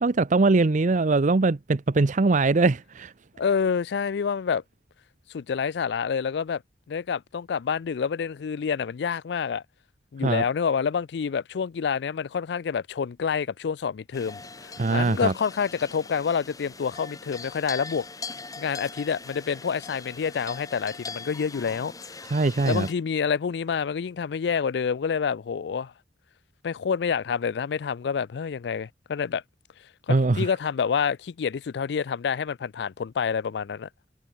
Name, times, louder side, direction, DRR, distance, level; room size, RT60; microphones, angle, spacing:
voice 1, 0.0-3.1 10.2-10.4 14.8-15.3 22.3-22.9 30.1-30.5, right 3 dB, 45° right, 0.6 m, -22 dB
voice 2, 3.4-4.6 5.3-6.6 6.9-9.6 10.1-18.1 18.6-22.2 22.6-25.9 26.6-29.4 30.1-33.9, left 6 dB, 70° left, 0.4 m, -28 dB
sound 1, 14.1-22.9, left 4 dB, 20° left, 1.8 m, -41 dB
head